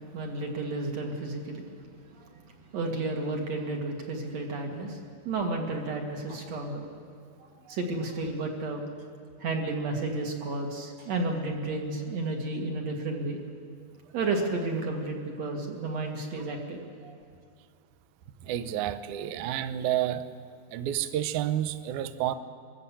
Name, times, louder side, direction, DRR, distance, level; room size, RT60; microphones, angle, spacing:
voice 1, 0.1-1.7 2.1-5.0 5.2-6.9 7.4-8.8 9.4-13.4 14.1-17.1, right 2 dB, 50° right, 1 dB, 2.6 m, -32 dB
voice 2, 18.4-20.3 20.7-22.3, right 11 dB, 80° right, 12 dB, 1.8 m, -30 dB
23.0 x 13.5 x 8.4 m, 2.2 s
omnidirectional pair, 4.4 m